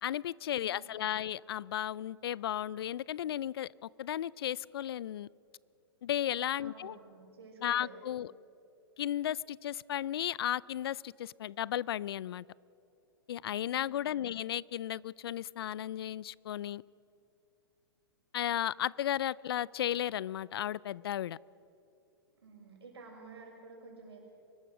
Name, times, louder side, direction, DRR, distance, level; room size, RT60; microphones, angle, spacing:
voice 1, 0.0-5.3 6.0-7.0 7.6-8.3 9.0-12.4 13.3-16.8 18.3-21.4, left 11 dB, 70° left, 0.4 m, -34 dB
voice 2, 0.6-1.3 6.6-8.3 13.7-14.4 22.4-24.2, right 3 dB, 80° right, 6.3 m, -52 dB
24.0 x 20.0 x 6.1 m
hypercardioid pair, 120°, 13 cm